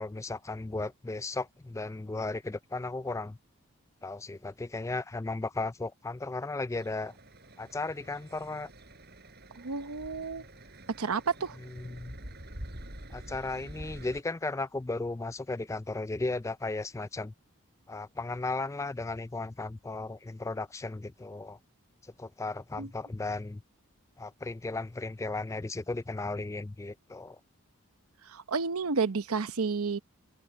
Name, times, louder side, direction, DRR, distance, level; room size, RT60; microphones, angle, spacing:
voice 1, 0.0-3.4 4.0-7.1 7.6-8.7 11.6-12.2 13.1-17.3 17.9-21.6 22.0-23.6 24.2-27.4, left 2 dB, 15° left, 0.3 m, -35 dB
sound 1, 6.7-14.2, right 1 dB, 45° right, 7.8 m, -47 dB
voice 2, 9.6-10.4 11.0-11.6 22.8-22.9 28.2-30.0, right 5 dB, 80° right, 0.9 m, -31 dB
head